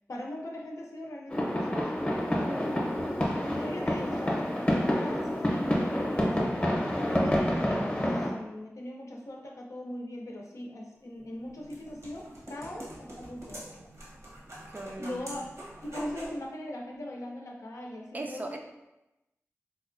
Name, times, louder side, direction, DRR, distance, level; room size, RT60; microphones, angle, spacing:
voice 1, 0.1-1.8 3.5-13.6 15.0-15.5 15.8-18.6, left 1 dB, 80° left, -1 dB, 0.5 m, -40 dB
sound 1, 1.3-8.3, equal, 20° left, 0.7 m, -28 dB
voice 2, 2.3-3.1 14.7-15.4 18.1-18.6, right 2 dB, 35° right, 3 dB, 0.4 m, -40 dB
sound 2, 11.2-16.4, equal, 65° right, 0.9 m, -46 dB
3.9 x 2.2 x 2.5 m, 0.95 s
wide cardioid pair, 55°, 5 cm